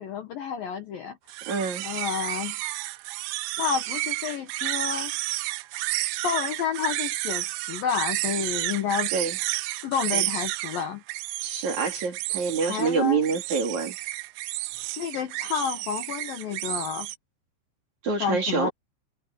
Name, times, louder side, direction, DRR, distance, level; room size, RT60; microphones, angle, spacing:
voice 1, 0.0-1.4 1.8-2.6 3.6-5.1 6.2-9.1 9.8-11.0 12.6-13.2 15.0-17.1 18.2-18.7, left 7 dB, 65° left, 2.3 m, -30 dB
sound 1, 1.3-17.2, right 19 dB, 80° right, 2.7 m, -31 dB
voice 2, 1.5-1.9 9.1-9.4 10.1-10.2 11.4-14.0 18.0-18.7, right 5 dB, 40° right, 3.7 m, -26 dB
omnidirectional pair, 5.7 m